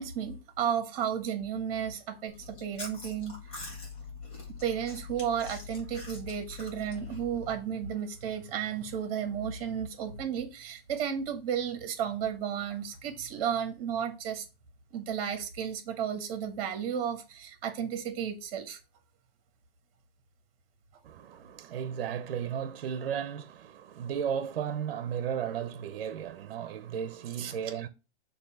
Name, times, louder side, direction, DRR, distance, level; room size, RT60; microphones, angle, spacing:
voice 1, 0.0-3.4 4.6-14.4 14.9-18.8 27.4-27.5, right 8 dB, 40° right, 1.4 m, -33 dB
Chewing mastication, 2.3-7.6, left 4 dB, 20° left, 1.2 m, -43 dB
voice 2, 21.0-27.9, right 8 dB, 65° right, 0.8 m, -34 dB
6.5 x 2.8 x 5.6 m
hypercardioid pair, 165°, 30 cm